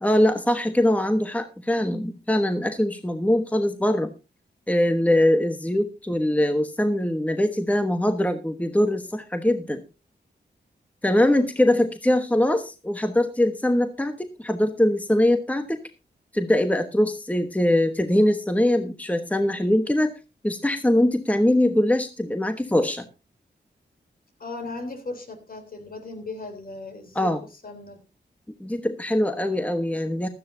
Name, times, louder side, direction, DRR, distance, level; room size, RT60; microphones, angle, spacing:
voice 1, 0.0-4.1 4.7-9.8 11.0-15.8 16.3-20.2 20.4-23.1 27.1-27.4 28.6-30.3, left 1 dB, 10° left, 8 dB, 1.1 m, -22 dB
voice 2, 11.2-11.7 24.4-27.3 27.6-28.0, left 3 dB, 55° left, 6 dB, 3.6 m, -37 dB
16.0 x 13.0 x 2.7 m, 0.28 s
wide cardioid pair, 95°, 18 cm